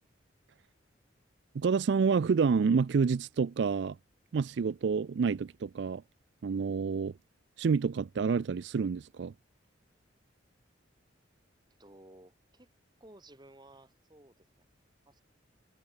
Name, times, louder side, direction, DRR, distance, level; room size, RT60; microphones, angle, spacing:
voice 1, 1.5-4.0 4.3-6.0 6.4-7.1 7.6-9.3, right 5 dB, 60° right, 0.4 m, -28 dB
voice 2, 11.8-12.7 13.0-14.7 15.1-15.2, right 1 dB, 20° right, 4.5 m, -56 dB
head